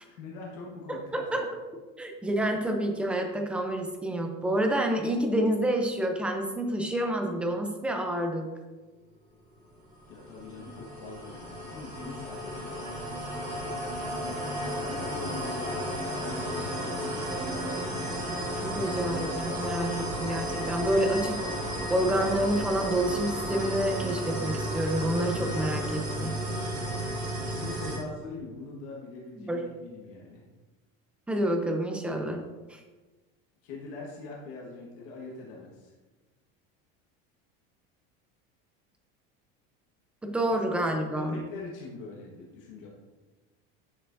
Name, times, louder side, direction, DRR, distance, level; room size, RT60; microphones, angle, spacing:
voice 1, 0.0-1.5 10.1-12.8 14.1-17.0 26.8-27.2 27.5-30.4 33.6-35.9 40.8-42.9, left 3 dB, 65° left, -3 dB, 1.5 m, -43 dB
voice 2, 0.9-1.4 2.0-8.5 18.6-21.4 21.9-26.3 29.4-29.6 31.3-32.4 32.7-32.8 40.2-41.4, right 1 dB, 5° right, 3 dB, 0.5 m, -28 dB
sound 1, 10.0-28.0, equal, 25° right, 1.8 m, -33 dB
10.0 x 6.7 x 2.6 m, 1.2 s
cardioid pair, 175°, 29 cm